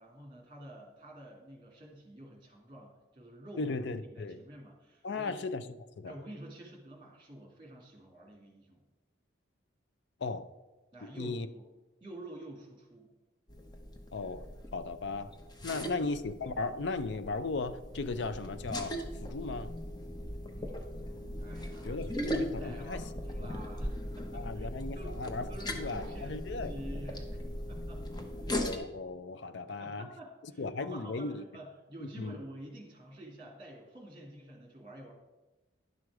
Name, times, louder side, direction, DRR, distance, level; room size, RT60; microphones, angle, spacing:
voice 1, 0.0-5.4 6.1-8.8 10.9-11.7 12.0-13.1 15.8-16.1 20.5-24.7 24.9-27.4 27.7-28.0 28.4-28.7 29.7-35.1, right 1 dB, 25° right, 2.3 m, -49 dB
voice 2, 3.6-4.4 5.0-6.2 10.2-10.5 11.2-11.5 14.1-15.3 15.6-19.7 21.8-23.0 23.4-23.6 24.3-26.7 28.5-30.1 30.6-31.5 32.2-32.4, left 3 dB, 70° left, 0.5 m, -37 dB
sound 1, 13.5-28.8, equal, 20° left, 0.8 m, -39 dB
10.5 x 6.2 x 4.7 m
head